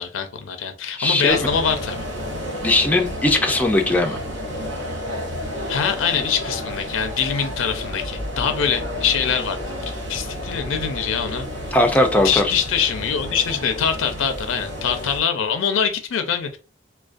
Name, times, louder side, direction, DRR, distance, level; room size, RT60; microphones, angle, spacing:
voice 1, 0.0-2.0 5.7-9.6 9.9-11.5 12.2-16.6, left 7 dB, 85° left, 0.4 m, -24 dB
voice 2, 1.0-1.4 2.6-4.2 11.7-12.4, left 2 dB, 10° left, 0.3 m, -18 dB
sound 1, 1.3-15.2, equal, 65° right, 0.9 m, -31 dB
2.3 x 2.2 x 2.5 m
head